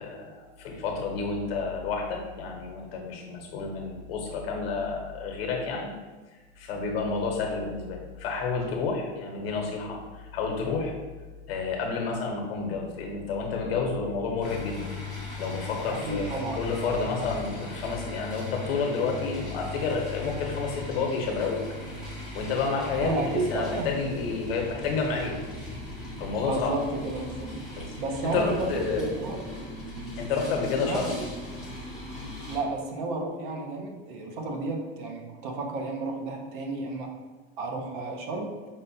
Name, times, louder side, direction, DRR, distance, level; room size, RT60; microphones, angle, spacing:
voice 1, 0.0-5.9 6.6-10.9 11.5-14.8 15.4-21.6 22.1-23.2 23.5-25.4 26.2-26.7 27.8-27.9 28.2-29.0 30.2-31.1, left 4 dB, 75° left, 1 dB, 0.9 m, -30 dB
sound 1, 14.4-32.6, left 2 dB, ahead, 0.5 m, -38 dB
voice 2, 15.9-16.6 23.0-23.9 26.5-27.6 28.0-29.5 30.8-31.3 32.5-37.1 37.6-38.6, right 2 dB, 55° right, 2 dB, 0.6 m, -32 dB
5.0 x 2.1 x 2.6 m, 1.3 s
supercardioid pair, 170°, 30 cm